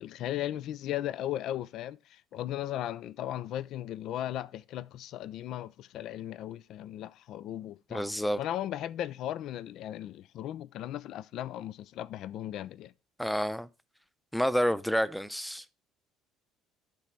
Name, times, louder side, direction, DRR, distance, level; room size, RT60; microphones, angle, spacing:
voice 1, 0.0-8.0 8.4-12.9, left 12 dB, 60° left, 0.3 m, -36 dB
voice 2, 7.9-8.4 13.2-13.7 14.3-15.7, equal, 5° left, 0.6 m, -29 dB
11.5 x 4.1 x 4.6 m
hypercardioid pair, 65°, 0 cm